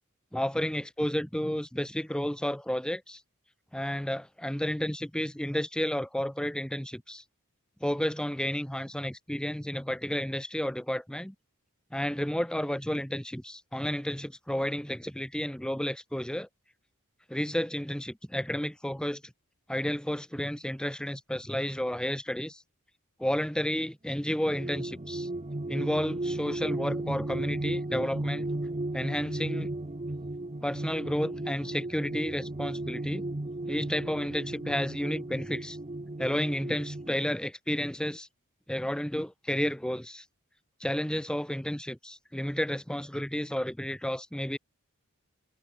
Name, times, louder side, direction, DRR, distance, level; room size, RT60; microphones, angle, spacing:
voice 1, 0.3-3.2 3.7-7.2 7.8-11.3 11.9-16.5 17.3-19.3 19.7-22.6 23.2-25.3 25.7-28.5 28.9-29.7 30.6-33.3 33.7-35.8 36.2-38.3 38.7-40.2 40.8-44.6, equal, 5° left, 1.0 m, -31 dB
sound 1, 24.3-37.1, right 2 dB, 30° right, 1.0 m, -35 dB
head